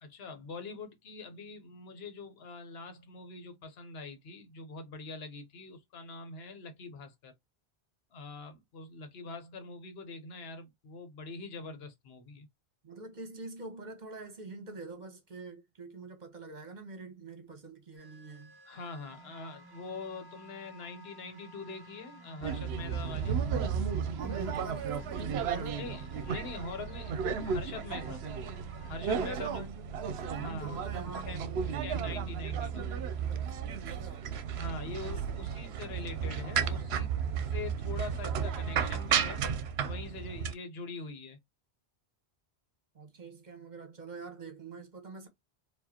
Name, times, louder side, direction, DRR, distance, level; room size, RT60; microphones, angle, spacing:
voice 1, 0.0-7.3 8.1-12.5 18.7-23.4 25.8-28.2 28.9-29.7 30.4-30.8 31.3-32.9 34.6-37.1 37.4-39.5 39.8-41.4, left 3 dB, 70° left, 1.1 m, -43 dB
voice 2, 12.8-18.5 24.1-25.8 29.2-31.6 33.3-34.3 35.1-36.6 42.9-45.3, right 3 dB, 45° right, 1.2 m, -46 dB
sound 1, 18.0-29.0, equal, 25° right, 0.8 m, -54 dB
sound 2, 22.4-40.5, right 7 dB, 75° right, 0.8 m, -33 dB
4.7 x 2.5 x 2.8 m
omnidirectional pair, 1.1 m